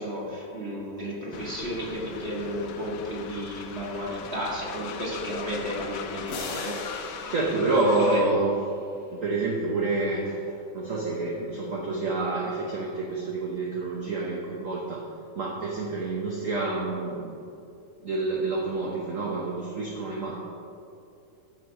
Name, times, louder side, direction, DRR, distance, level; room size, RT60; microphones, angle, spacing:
voice 1, 0.0-8.2, equal, 35° right, -5 dB, 1.9 m, -33 dB
Train, 1.3-8.4, left 8 dB, 75° left, 1.1 m, -40 dB
sound 1, 6.3-9.0, left 3 dB, 55° left, 1.2 m, -40 dB
voice 2, 7.3-8.5 9.1-15.0 15.3-17.3 18.0-20.4, right 2 dB, 50° right, -3 dB, 1.1 m, -28 dB
12.5 x 4.2 x 5.1 m, 2.7 s
omnidirectional pair, 2.1 m